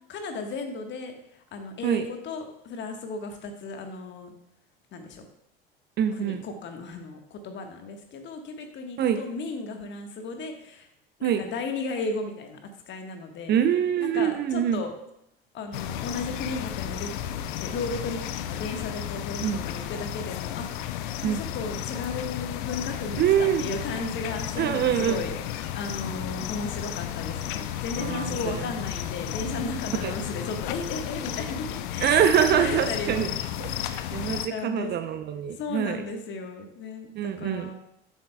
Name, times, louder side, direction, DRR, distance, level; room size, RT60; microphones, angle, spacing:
voice 1, 0.1-4.3 4.9-5.3 6.1-10.9 11.2-13.6 14.0-14.9 15.5-17.1 17.5-18.2 18.5-33.3 34.5-35.0 35.5-37.8, left 3 dB, 40° left, 5 dB, 1.4 m, -35 dB
voice 2, 6.0-6.4 9.0-9.2 11.2-11.4 13.5-14.8 19.4-19.6 21.2-21.4 23.2-23.6 24.6-25.2 28.0-28.7 30.0-30.1 32.0-33.3 33.6-36.0 37.2-37.7, right 9 dB, 35° right, 10 dB, 0.6 m, -25 dB
sound 1, 15.7-34.5, left 11 dB, 60° left, 0.6 m, -33 dB
11.0 x 7.1 x 2.3 m, 0.78 s
figure-of-eight pair, 70°, 29 cm